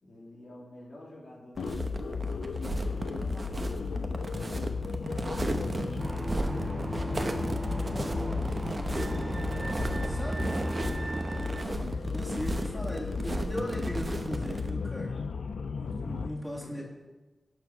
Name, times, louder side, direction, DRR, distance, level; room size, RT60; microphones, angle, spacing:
voice 1, 0.0-2.2 2.8-4.2 5.1-6.6 7.1-9.7 15.8-16.8, left 1 dB, 65° left, -5 dB, 3.0 m, -50 dB
sound 1, 1.5-14.7, right 2 dB, 45° right, 0.9 m, -35 dB
sound 2, 1.6-16.3, left 5 dB, 85° left, 0.4 m, -34 dB
sound 3, 6.0-11.6, right 1 dB, 30° right, 0.4 m, -36 dB
voice 2, 10.0-15.2 15.7-16.8, equal, 5° left, -3 dB, 2.5 m, -39 dB
11.5 x 5.0 x 5.3 m, 1.2 s
cardioid pair, 40°, 0 cm